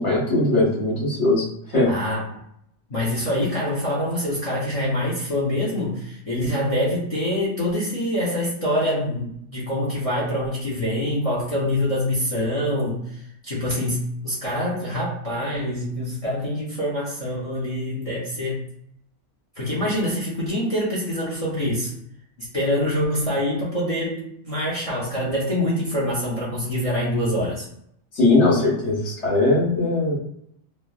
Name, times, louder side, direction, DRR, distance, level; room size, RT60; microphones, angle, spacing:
voice 1, 0.0-1.9 28.1-30.1, left 2 dB, 65° left, -8 dB, 1.4 m, -20 dB
voice 2, 1.9-2.4 2.9-18.6 19.6-21.9 22.4-27.7, left 1 dB, 40° left, -6 dB, 0.6 m, -25 dB
3.2 x 2.0 x 2.3 m, 0.73 s
omnidirectional pair, 1.3 m